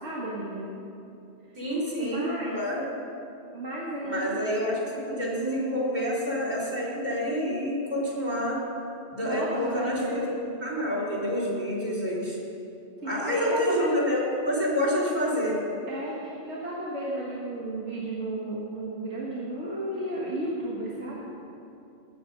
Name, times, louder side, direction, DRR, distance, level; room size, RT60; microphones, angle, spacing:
voice 1, 0.0-0.7 1.6-1.7 2.0-2.6 3.5-4.5 9.2-10.3 13.0-13.9 15.9-21.2, right 1 dB, 85° right, -6 dB, 2.0 m, -33 dB
voice 2, 1.6-2.9 4.0-8.6 9.1-10.3 10.6-12.4 13.0-15.6, equal, 40° right, -5 dB, 3.7 m, -28 dB
18.5 x 7.9 x 5.3 m, 2.7 s
omnidirectional pair, 1.2 m